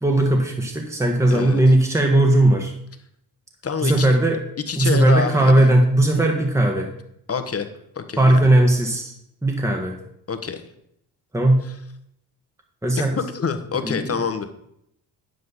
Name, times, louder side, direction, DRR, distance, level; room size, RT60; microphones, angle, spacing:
voice 1, 0.0-2.7 3.8-4.4 4.7-6.9 8.2-9.1 9.4-10.0 11.3-11.6 12.8-13.2 13.8-14.1, right 1 dB, 5° right, 2 dB, 1.5 m, -18 dB
voice 2, 1.3-1.6 3.6-4.1 4.7-5.7 7.3-7.7 7.9-8.4 10.3-10.6 13.0-13.1 13.3-14.5, left 6 dB, 30° left, 9 dB, 1.2 m, -26 dB
9.2 x 7.8 x 4.1 m, 0.74 s
hypercardioid pair, 45°, 49 cm